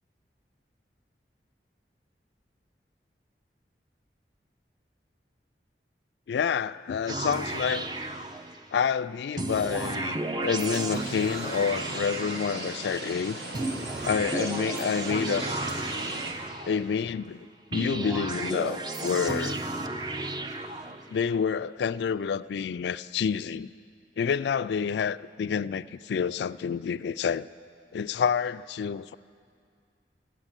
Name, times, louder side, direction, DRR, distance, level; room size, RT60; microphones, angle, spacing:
voice 1, 6.3-7.9 8.7-13.4 14.0-15.5 16.6-19.6 21.1-23.7 24.2-27.5 27.9-29.1, left 6 dB, 75° left, 16 dB, 0.3 m, -28 dB
sound 1, 7.1-8.8 9.4-12.9 13.5-17.1 17.7-21.2, right 2 dB, 25° right, 0.5 m, -33 dB
sound 2, 10.9-16.3, right 2 dB, 75° right, 1.4 m, -37 dB
13.5 x 10.0 x 9.0 m, 2.2 s
head